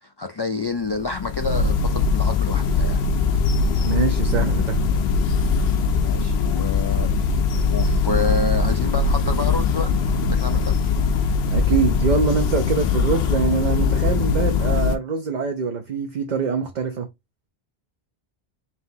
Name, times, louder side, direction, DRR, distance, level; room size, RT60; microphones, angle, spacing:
voice 1, 0.0-3.0 6.0-7.1 7.7-10.9, left 3 dB, 45° left, 0.3 m, -28 dB
sound 1, 0.8-15.0, left 4 dB, 85° left, 0.9 m, -21 dB
voice 2, 3.8-4.8 11.5-17.1, right 6 dB, 50° right, 0.7 m, -24 dB
5.9 x 2.7 x 2.6 m
omnidirectional pair, 1.1 m